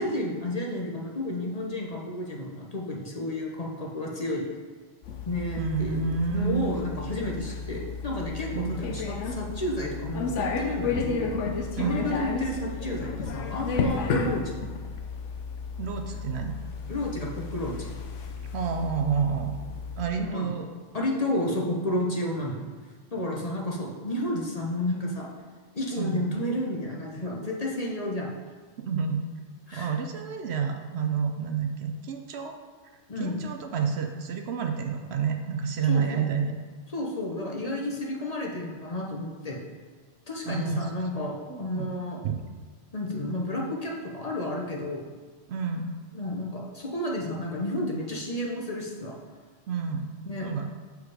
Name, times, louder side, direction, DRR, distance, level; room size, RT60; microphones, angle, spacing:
voice 1, 0.0-4.5 5.3-6.0 6.3-11.3 11.8-14.6 16.9-17.9 20.2-20.5 20.9-22.6 23.1-25.3 25.7-28.3 29.7-29.9 33.1-33.4 35.9-36.3 36.9-39.6 40.3-42.2 42.9-45.0 46.1-49.2 50.2-50.5, left 1 dB, 35° left, -2 dB, 0.9 m, -31 dB
sound 1, 5.0-20.1, left 4 dB, 85° left, 1.0 m, -33 dB
voice 2, 5.6-6.7 8.5-8.8 11.8-12.1 15.8-16.6 18.5-19.6 20.0-20.7 26.0-26.3 28.8-29.2 29.7-32.6 33.2-36.6 40.5-40.9 41.5-41.9 42.2-42.5 45.5-45.9 49.7-50.1 50.4-50.7, right 6 dB, 65° right, 4 dB, 0.8 m, -29 dB
6.6 x 4.8 x 4.9 m, 1.5 s
omnidirectional pair, 1.2 m